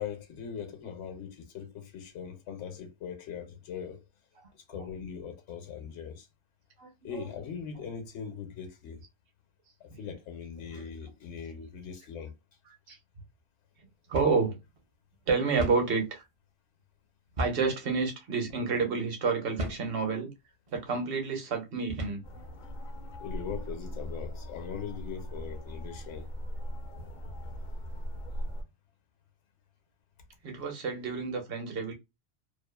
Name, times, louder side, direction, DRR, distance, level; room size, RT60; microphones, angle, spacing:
voice 1, 0.0-4.0 4.5-6.3 7.0-9.0 9.8-12.3 23.2-26.3, left 7 dB, 75° left, 1.0 m, -40 dB
voice 2, 6.8-7.4 7.7-7.9 9.9-10.0 10.6-10.9 12.7-13.0 14.1-14.6 15.3-16.2 17.4-20.3 20.7-22.2 30.4-31.9, right 4 dB, 55° right, 1.0 m, -30 dB
sound 1, 14.1-14.4 14.8-14.9 15.6-15.9 17.4-17.7 18.4-18.6 19.6-19.9 20.7-20.9 21.9-22.3, equal, 40° right, 0.5 m, -36 dB
sound 2, 22.2-28.6, equal, 55° left, 0.6 m, -39 dB
2.6 x 2.4 x 2.2 m
omnidirectional pair, 1.2 m